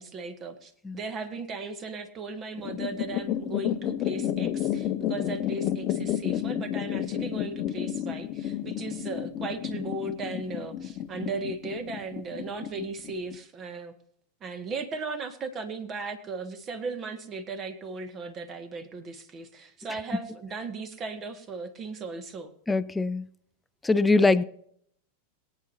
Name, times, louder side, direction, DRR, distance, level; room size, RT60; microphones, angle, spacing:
voice 1, 0.0-13.9 14.4-22.5, right 3 dB, 25° right, 9 dB, 1.8 m, -37 dB
sound 1, 2.6-13.4, left 11 dB, 35° left, 0.8 m, -31 dB
voice 2, 22.7-23.3 23.8-24.4, left 3 dB, 10° left, 15 dB, 0.6 m, -22 dB
22.0 x 9.4 x 2.8 m, 0.67 s
figure-of-eight pair, 90°, 0 cm